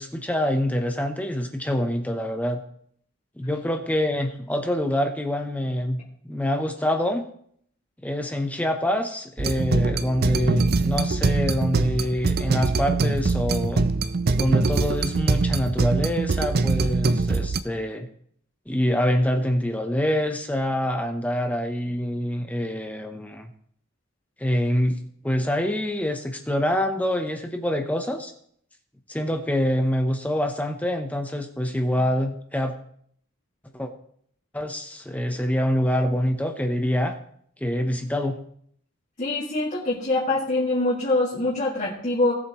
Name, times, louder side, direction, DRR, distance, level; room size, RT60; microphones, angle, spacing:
voice 1, 0.0-2.6 3.4-6.0 6.3-7.3 8.0-13.9 14.3-18.1 18.7-23.5 24.4-28.3 29.1-32.7 33.7-33.9 34.5-37.1 37.6-38.4, equal, 5° left, 5 dB, 0.8 m, -25 dB
sound 1, 9.4-17.6, right 3 dB, 50° right, 0.5 m, -23 dB
voice 2, 39.2-42.3, left 2 dB, 35° left, -6 dB, 2.0 m, -24 dB
17.5 x 8.1 x 3.0 m, 0.64 s
head